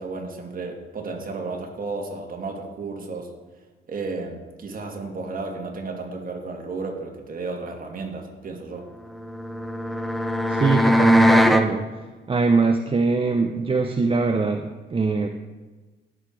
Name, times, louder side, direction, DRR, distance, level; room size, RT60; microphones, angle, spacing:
voice 1, 0.0-3.3 3.9-8.9, right 3 dB, 45° right, 1 dB, 2.5 m, -33 dB
sound 1, 9.1-11.7, left 1 dB, ahead, 0.9 m, -20 dB
voice 2, 10.5-15.3, right 4 dB, 25° right, 5 dB, 0.7 m, -22 dB
16.5 x 7.0 x 4.7 m, 1.2 s
cardioid pair, 90°, 20 cm